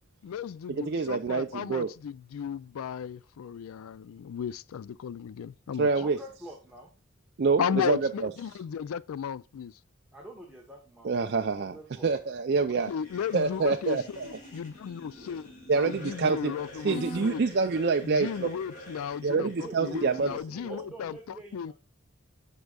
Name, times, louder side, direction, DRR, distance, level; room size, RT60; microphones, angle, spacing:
voice 1, 0.2-5.9 7.6-9.8 12.7-17.4 18.0-21.7, left 7 dB, 85° left, 0.3 m, -35 dB
voice 2, 0.8-1.9 5.8-6.2 7.4-8.3 11.0-11.8 12.0-12.9 13.3-14.3 15.7-16.5 16.8-18.5 19.2-20.3, right 4 dB, 50° right, 0.4 m, -26 dB
voice 3, 6.0-6.9 10.1-11.1 11.6-12.1 19.3-21.7, right 1 dB, 5° right, 1.0 m, -45 dB
sound 1, 12.8-20.4, left 1 dB, 35° left, 2.2 m, -46 dB
8.0 x 5.3 x 2.3 m
head